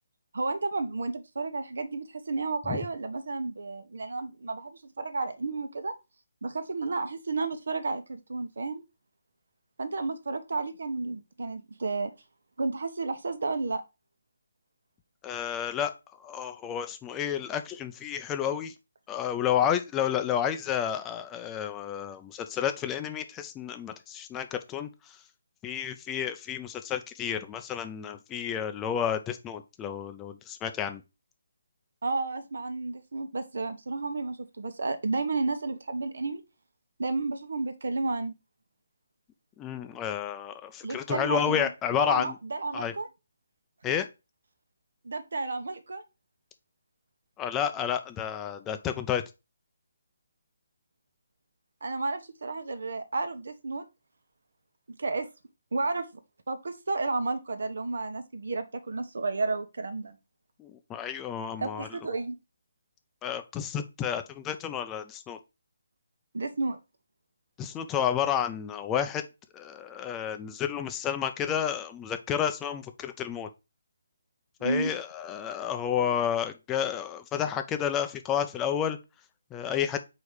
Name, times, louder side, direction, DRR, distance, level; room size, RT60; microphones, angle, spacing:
voice 1, 0.3-5.9 6.4-8.8 9.8-12.1 12.6-13.8 32.0-36.4 37.0-38.3 40.8-43.1 45.0-46.0 51.8-53.8 55.0-55.3 55.7-56.1 56.5-60.2 61.6-62.4 66.3-66.8 74.6-74.9, right 3 dB, 70° right, 9 dB, 1.1 m, -32 dB
voice 2, 15.2-15.9 16.2-18.7 19.1-24.9 25.6-31.0 39.6-42.4 42.7-42.9 43.8-44.1 47.4-49.2 60.6-61.9 63.2-65.4 67.6-69.2 69.5-73.5 74.6-79.0 79.5-80.0, left 9 dB, 15° left, 8 dB, 0.6 m, -30 dB
4.8 x 4.1 x 4.8 m, 0.26 s
figure-of-eight pair, 150°, 0 cm